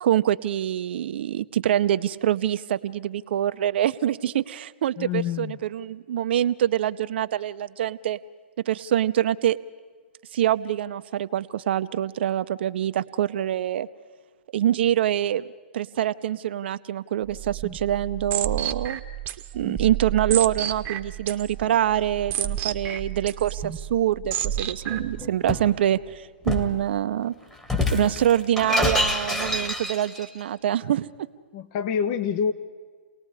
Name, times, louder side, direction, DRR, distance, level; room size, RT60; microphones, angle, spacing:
voice 1, 0.0-8.2 8.7-9.6 10.3-13.9 14.5-15.5 15.7-19.0 19.5-27.3 27.9-31.3, right 11 dB, 60° right, 11 dB, 0.7 m, -25 dB
voice 2, 5.0-5.6 31.5-32.5, left 7 dB, 40° left, 11 dB, 1.1 m, -26 dB
sound 1, 17.3-25.2, right 10 dB, 30° right, 1.1 m, -31 dB
Shatter, 24.9-25.7 26.5-26.8 27.6-30.3, left 2 dB, 5° left, 1.8 m, -26 dB
29.5 x 19.0 x 4.9 m, 1.5 s
hypercardioid pair, 125°, 7 cm